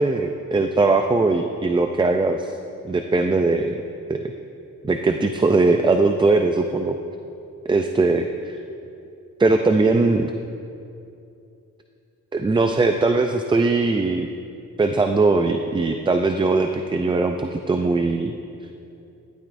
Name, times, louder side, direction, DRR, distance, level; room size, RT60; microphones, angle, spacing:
voice 1, 0.0-2.5 2.8-3.8 4.1-4.2 4.8-7.0 7.7-8.6 9.4-10.3 12.3-14.3 14.8-18.3, right 3 dB, 15° right, 6 dB, 0.4 m, -20 dB
14.5 x 12.0 x 2.6 m, 2.6 s
cardioid pair, 105°, 31 cm